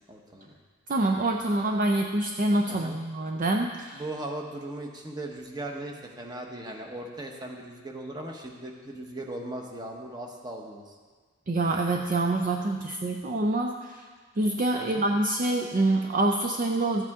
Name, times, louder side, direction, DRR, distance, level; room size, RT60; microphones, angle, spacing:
voice 1, 0.1-0.5 2.7-3.0 3.9-10.9 14.7-15.0, right 1 dB, 20° right, 1 dB, 1.0 m, -38 dB
voice 2, 0.9-4.0 11.5-14.0 14.4-17.0, right 2 dB, 40° right, 2 dB, 0.5 m, -26 dB
13.5 x 8.2 x 3.6 m, 1.5 s
head